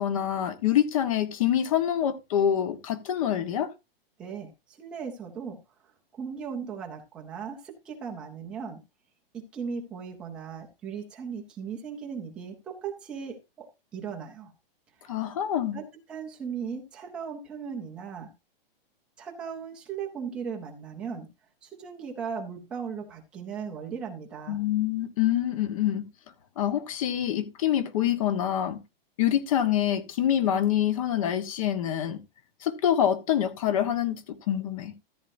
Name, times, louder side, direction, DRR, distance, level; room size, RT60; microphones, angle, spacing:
voice 1, 0.0-3.7 15.1-15.8 24.5-26.1 26.6-28.8 29.2-32.2 32.6-34.9, left 10 dB, 35° left, 1.2 m, -26 dB
voice 2, 4.2-5.6 6.1-8.8 9.3-14.5 15.0-15.1 15.7-18.3 19.2-21.3 21.6-24.6, right 6 dB, 5° right, 0.4 m, -37 dB
14.0 x 8.6 x 2.6 m
hypercardioid pair, 175°, 30 cm